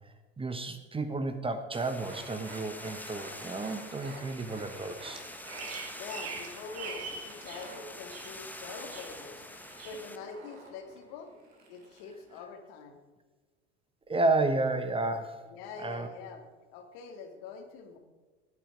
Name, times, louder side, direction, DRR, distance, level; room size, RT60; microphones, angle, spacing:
voice 1, 0.4-5.2 14.1-15.4 15.8-16.1, right 2 dB, 15° right, 9 dB, 1.1 m, -31 dB
sound 1, 1.7-10.2, left 1 dB, 5° left, 1.1 m, -46 dB
sound 2, 2.0-12.4, right 2 dB, 75° right, 2.9 m, -50 dB
Bird vocalization bird call bird song, 5.2-7.7 8.0-8.6 8.9-9.4 9.8-10.0, right 5 dB, 45° right, 2.4 m, -43 dB
voice 2, 5.9-9.4 9.8-11.3 11.7-13.0 15.5-16.4 16.7-18.0, left 5 dB, 60° left, 5 dB, 2.2 m, -44 dB
16.0 x 9.0 x 5.2 m, 1.3 s
figure-of-eight pair, 70°, 33 cm